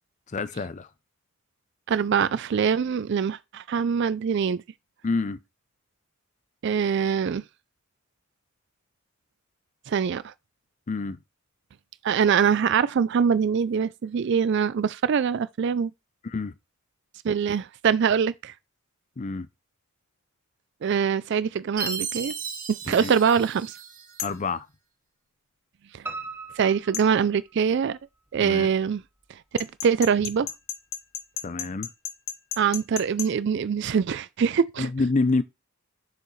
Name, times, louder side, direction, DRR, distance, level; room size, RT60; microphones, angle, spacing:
voice 1, 0.3-0.9 5.0-5.4 10.9-11.2 16.2-16.5 19.2-19.5 22.9-23.1 24.2-24.7 28.4-28.7 31.4-31.9 34.8-35.4, left 3 dB, 35° left, 0.5 m, -27 dB
voice 2, 1.9-4.6 6.6-7.4 9.9-10.3 12.0-15.9 17.2-18.5 20.8-22.3 22.7-23.7 25.9-26.0 26.6-28.0 28.3-29.0 29.8-30.5 32.6-34.9, right 7 dB, 55° right, 0.4 m, -23 dB
Chime, 21.8-24.2, right 6 dB, 40° right, 1.7 m, -35 dB
sound 1, 24.2-24.4 26.9-27.1 29.6-33.3, left 9 dB, 65° left, 1.1 m, -34 dB
Piano, 26.1-28.0 28.4-29.3 29.6-29.7 30.1-30.2 30.5-30.6, right 3 dB, 10° right, 0.9 m, -40 dB
7.6 x 6.6 x 3.2 m
head